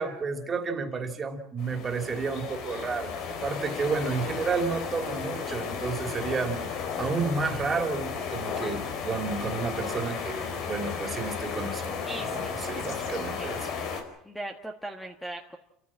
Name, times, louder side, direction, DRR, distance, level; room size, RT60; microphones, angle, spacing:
voice 1, 0.0-6.7 7.0-12.0 12.3-13.7, right 4 dB, 25° right, 6 dB, 3.1 m, -31 dB
sound 1, 1.6-14.0, left 6 dB, 60° left, 4.5 m, -34 dB
voice 2, 12.0-12.9 13.4-13.6 14.2-15.6, right 1 dB, 5° left, 4 dB, 1.6 m, -39 dB
29.5 x 14.5 x 7.5 m, 0.82 s
supercardioid pair, 130°, 0 cm